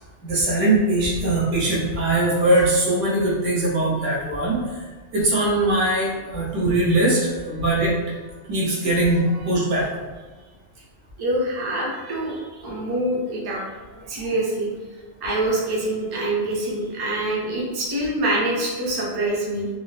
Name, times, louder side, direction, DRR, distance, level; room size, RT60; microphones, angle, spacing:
voice 1, 0.2-4.8 5.1-8.0 8.5-9.9 14.1-14.3, right 1 dB, 90° right, -5 dB, 1.2 m, -21 dB
voice 2, 11.2-13.6 14.1-14.7 15.2-19.7, right 1 dB, 30° right, -4 dB, 0.4 m, -25 dB
3.7 x 2.0 x 2.4 m, 1.3 s
omnidirectional pair, 1.2 m